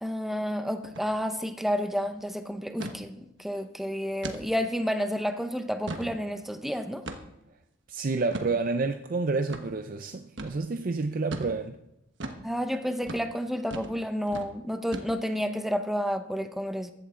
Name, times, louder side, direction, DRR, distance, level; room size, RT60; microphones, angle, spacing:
voice 1, 0.0-7.0 12.4-16.9, equal, ahead, 8 dB, 0.7 m, -30 dB
sound 1, 0.8-1.1 1.4-1.5 1.8-2.1 2.8-3.0 3.5-3.6 4.2-4.4 4.9-5.0 5.6-6.1 7.1-7.4 8.3-8.5 9.5-9.7 10.4-10.6 11.3-11.5 12.2-12.4 13.0-13.3 13.7-14.0 14.3-14.5 14.9-15.4, right 2 dB, 65° right, 1.2 m, -37 dB
voice 2, 7.9-11.7, right 3 dB, 45° right, 8 dB, 0.5 m, -29 dB
15.0 x 11.5 x 3.8 m, 0.86 s
head